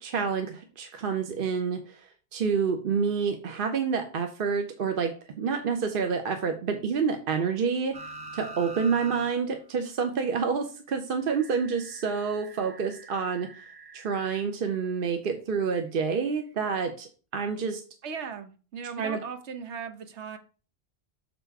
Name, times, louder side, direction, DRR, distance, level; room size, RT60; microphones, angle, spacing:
voice 1, 0.0-8.0 8.3-13.6 13.9-17.8 19.0-19.2, right 5 dB, 55° right, 0.9 m, -28 dB
sound 1, 7.9-9.3 9.7-9.8 11.3-14.4 16.1-16.2, right 2 dB, 25° right, 0.6 m, -44 dB
voice 2, 18.0-20.4, right 6 dB, 85° right, 1.2 m, -38 dB
6.6 x 4.1 x 4.6 m
omnidirectional pair, 1.1 m